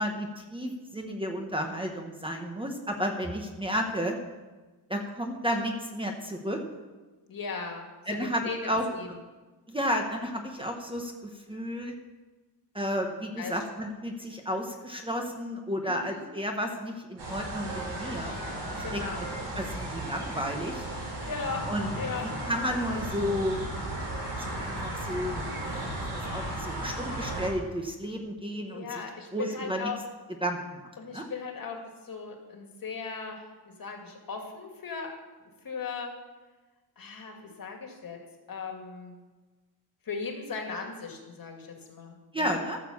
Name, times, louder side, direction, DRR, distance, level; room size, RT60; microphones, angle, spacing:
voice 1, 0.0-4.2 4.9-6.6 8.1-8.9 9.7-12.0 12.7-20.9 21.7-22.0 22.4-23.9 24.4-29.0 29.3-29.9 30.4-30.8 31.1-31.3 42.3-42.8, equal, 10° right, 2 dB, 1.0 m, -32 dB
voice 2, 7.3-9.1 13.4-13.5 15.9-16.3 18.8-19.2 21.2-21.6 21.9-22.3 28.7-30.0 31.0-35.2 35.6-36.1 37.0-38.2 38.5-39.2 40.1-42.6, left 5 dB, 50° left, 2 dB, 2.1 m, -38 dB
sound 1, 17.2-27.5, right 1 dB, 70° right, 4.9 m, -35 dB
14.0 x 6.8 x 7.0 m, 1.2 s
wide cardioid pair, 160°, 43 cm